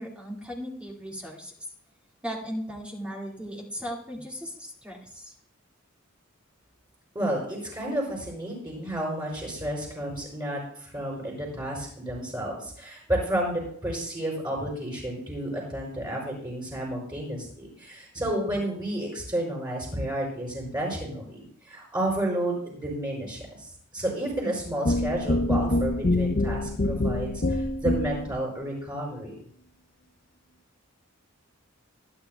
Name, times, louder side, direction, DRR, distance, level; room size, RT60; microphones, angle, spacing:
voice 1, 0.0-1.5 2.2-5.3, equal, 5° right, -3 dB, 1.9 m, -37 dB
voice 2, 7.2-29.4, right 1 dB, 20° right, -3 dB, 5.2 m, -31 dB
sound 1, 24.9-28.4, left 1 dB, 45° left, 0.6 m, -25 dB
25.0 x 9.6 x 2.2 m, 0.63 s
head